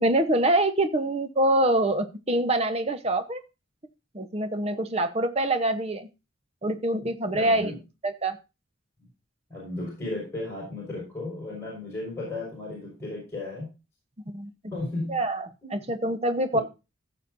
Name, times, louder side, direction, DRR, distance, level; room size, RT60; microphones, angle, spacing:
voice 1, 0.0-3.4 4.1-6.1 6.6-7.7 8.0-8.4 14.3-14.5 15.1-16.6, right 1 dB, 30° right, 9 dB, 0.9 m, -25 dB
voice 2, 7.3-7.8 9.5-13.7 14.7-15.2 15.6-15.7 16.5-16.6, left 2 dB, 15° left, -4 dB, 5.2 m, -34 dB
15.0 x 7.1 x 2.6 m, 0.28 s
head